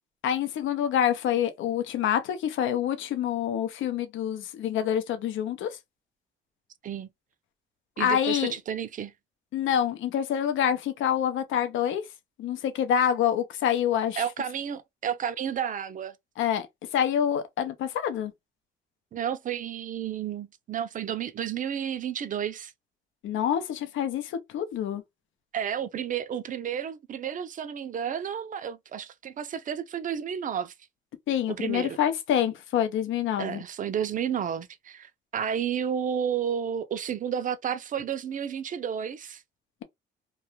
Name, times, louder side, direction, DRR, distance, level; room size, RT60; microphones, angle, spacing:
voice 1, 0.2-5.7 8.0-8.5 9.5-12.0 12.4-14.2 16.4-16.7 16.9-18.3 23.2-25.0 31.3-33.6, left 9 dB, 75° left, 0.6 m, -26 dB
voice 2, 8.0-9.1 14.2-16.1 19.1-22.7 25.5-30.7 31.5-32.0 33.4-39.4, right 8 dB, 40° right, 0.4 m, -31 dB
2.4 x 2.3 x 2.9 m
cardioid pair, 90°, 20 cm